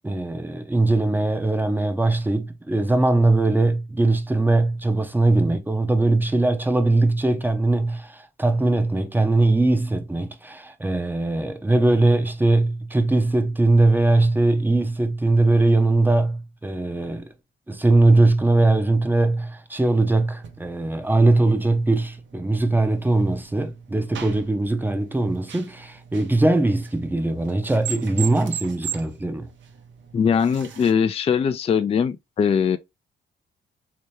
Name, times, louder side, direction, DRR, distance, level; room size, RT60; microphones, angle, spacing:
voice 1, 0.0-17.3 17.7-29.5, right 2 dB, 10° right, 0.7 m, -20 dB
sound 1, 20.4-30.9, right 9 dB, 70° right, 0.9 m, -39 dB
voice 2, 30.1-32.8, left 7 dB, 30° left, 0.4 m, -21 dB
3.3 x 2.9 x 3.1 m
cardioid pair, 90°, 20 cm